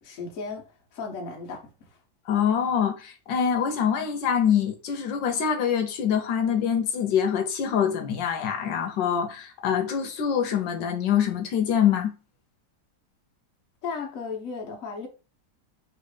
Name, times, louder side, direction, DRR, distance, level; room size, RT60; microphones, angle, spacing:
voice 1, 0.0-1.9 13.8-15.1, left 4 dB, 55° left, 1.4 m, -35 dB
voice 2, 2.3-12.1, left 8 dB, 85° left, 1.4 m, -25 dB
3.2 x 3.2 x 4.8 m
omnidirectional pair, 1.9 m